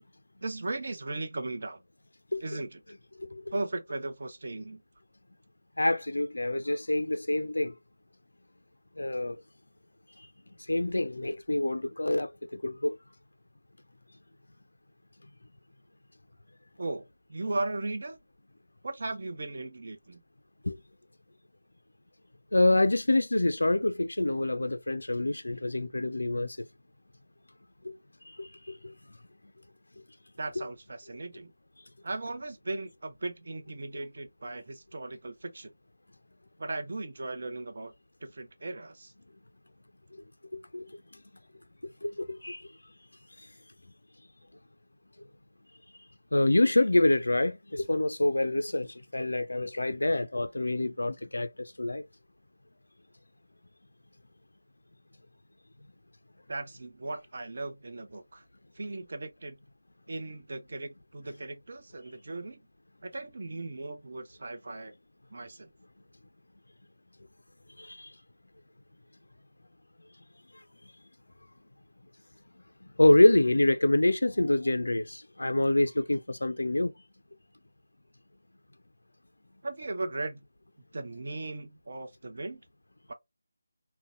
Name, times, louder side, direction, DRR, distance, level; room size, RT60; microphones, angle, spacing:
voice 1, 0.4-1.8 2.4-2.8 3.5-4.8 16.8-18.2 18.8-20.2 30.4-31.5 32.0-35.7 36.6-37.9 38.2-39.1 56.5-58.4 58.7-59.6 60.1-62.6 63.0-64.9 65.3-65.7 79.6-80.4 80.9-82.6 83.1-83.2, right 2 dB, 50° right, 0.6 m, -37 dB
voice 2, 5.8-7.7 9.0-9.4 10.7-12.3 12.6-12.9 20.7-20.8 22.5-26.6 28.4-28.5 40.7-40.9 42.0-42.1 42.4-42.6 46.3-51.5 51.8-52.0 67.8-68.1 73.0-76.9, left 1 dB, 70° left, 0.3 m, -26 dB
3.9 x 2.1 x 2.4 m
figure-of-eight pair, 160°, 0 cm